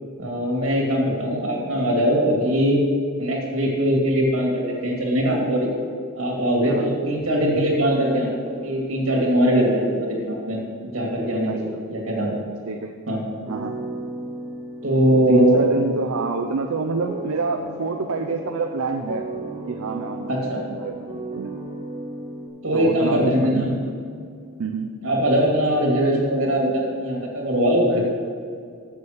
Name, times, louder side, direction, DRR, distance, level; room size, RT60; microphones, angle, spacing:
voice 1, 0.2-2.8 3.2-5.7 6.1-12.3 13.1-13.2 14.8-15.6 20.3-20.6 22.6-23.7 25.0-28.0, equal, 70° right, -1 dB, 2.4 m, -21 dB
sound 1, 13.4-22.5, right 1 dB, 20° right, 1.5 m, -35 dB
voice 2, 15.3-19.2 19.7-21.5 22.7-23.8 24.6-24.9, right 4 dB, 85° right, 4 dB, 0.5 m, -27 dB
7.1 x 6.9 x 6.5 m, 2.3 s
head